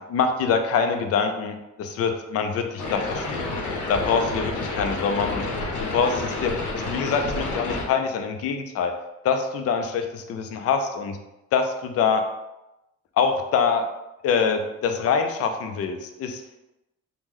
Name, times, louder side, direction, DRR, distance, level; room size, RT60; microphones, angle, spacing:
voice 1, 0.1-3.5 3.9-5.5 5.8-8.9 9.2-11.2 11.5-12.2 13.2-13.8 14.2-16.4, left 6 dB, 55° left, 6 dB, 0.4 m, -24 dB
sound 1, 2.8-7.8, left 2 dB, 85° left, 0.7 m, -29 dB
3.0 x 2.1 x 3.5 m, 0.95 s
cardioid pair, 90°, 30 cm